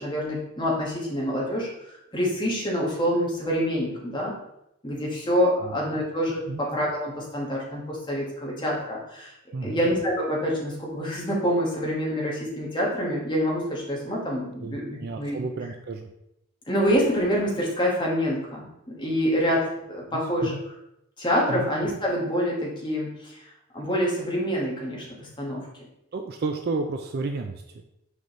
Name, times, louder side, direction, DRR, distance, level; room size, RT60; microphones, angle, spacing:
voice 1, 0.0-1.7 2.1-4.4 4.8-9.3 9.6-15.4 16.7-20.6 21.2-23.4 23.7-25.7, equal, 20° left, -4 dB, 1.5 m, -26 dB
voice 2, 9.5-9.9 14.6-16.1 20.1-20.6 21.5-21.7 26.1-27.8, right 3 dB, 45° right, 5 dB, 0.4 m, -32 dB
6.4 x 5.1 x 3.1 m, 0.83 s
head